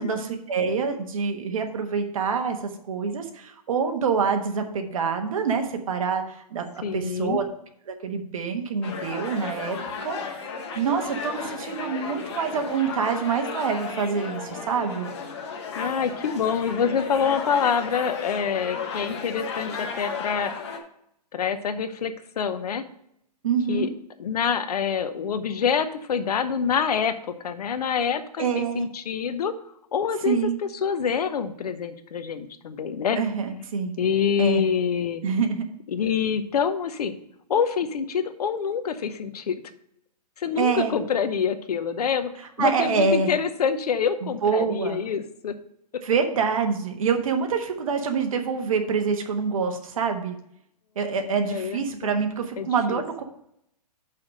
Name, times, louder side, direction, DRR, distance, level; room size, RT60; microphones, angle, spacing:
voice 1, 0.0-2.6 2.9-6.6 6.9-7.4 7.9-10.5 10.7-15.1 23.4-23.9 28.4-28.9 30.2-30.6 33.2-33.9 34.4-34.6 35.2-35.6 40.5-40.9 42.6-43.3 44.2-45.0 46.0-50.3 51.0-53.2, right 5 dB, 55° right, 5 dB, 1.2 m, -26 dB
voice 2, 6.8-7.4 15.8-20.5 21.3-22.8 23.7-23.9 24.2-27.1 27.4-29.5 29.9-30.4 30.8-33.2 34.0-35.2 35.9-37.2 37.5-39.5 40.4-42.3 42.6-45.5 51.4-52.2 52.6-53.0, left 7 dB, 70° left, 10 dB, 0.8 m, -26 dB
sound 1, 8.8-20.8, left 5 dB, 40° left, 1.0 m, -34 dB
5.8 x 4.8 x 6.3 m, 0.75 s
hypercardioid pair, 170°, 21 cm